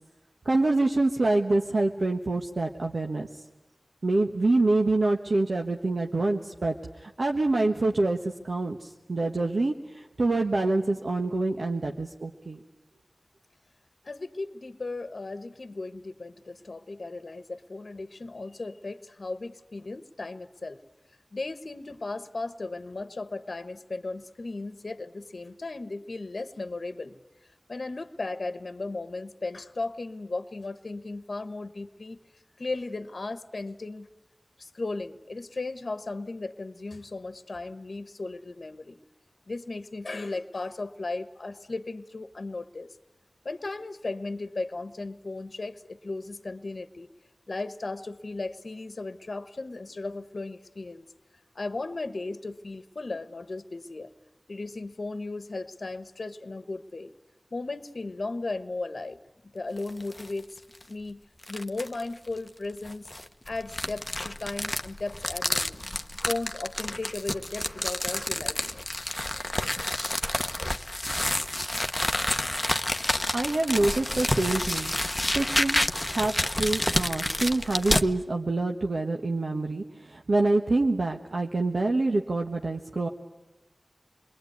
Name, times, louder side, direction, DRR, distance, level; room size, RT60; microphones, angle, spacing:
voice 1, 0.4-3.4 4.0-8.2 8.4-12.6 73.3-74.9 75.3-83.1, right 2 dB, 75° right, 2 dB, 1.3 m, -26 dB
voice 2, 14.0-20.8 21.3-27.2 27.7-32.2 32.6-34.1 34.6-39.0 39.5-42.9 43.4-47.1 47.5-51.1 51.5-54.1 54.5-57.1 57.5-60.6 60.9-63.1 63.5-65.9 66.3-68.8, left 3 dB, 70° left, 11 dB, 1.1 m, -36 dB
sound 1, 59.8-60.3 60.7-60.8 61.4-62.0 62.8-78.1, left 1 dB, 15° left, 1.0 m, -29 dB
28.5 x 21.5 x 9.5 m, 1.1 s
wide cardioid pair, 55°, 0 cm